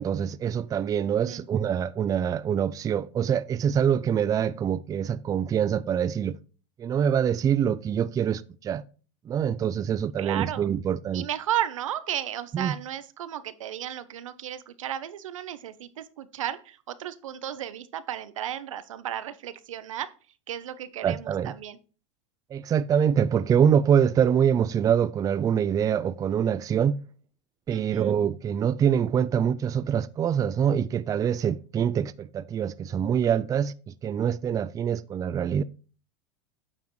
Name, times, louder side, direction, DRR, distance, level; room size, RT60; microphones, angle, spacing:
voice 1, 0.0-6.4 6.8-8.8 9.3-11.3 12.5-12.7 21.0-21.5 22.5-27.0 27.7-35.6, right 8 dB, 20° right, 0.4 m, -25 dB
voice 2, 1.0-1.4 10.2-10.7 11.1-20.1 20.5-21.8 27.7-28.2, right 11 dB, 90° right, 0.9 m, -34 dB
9.3 x 7.2 x 3.1 m
supercardioid pair, 115°, 16 cm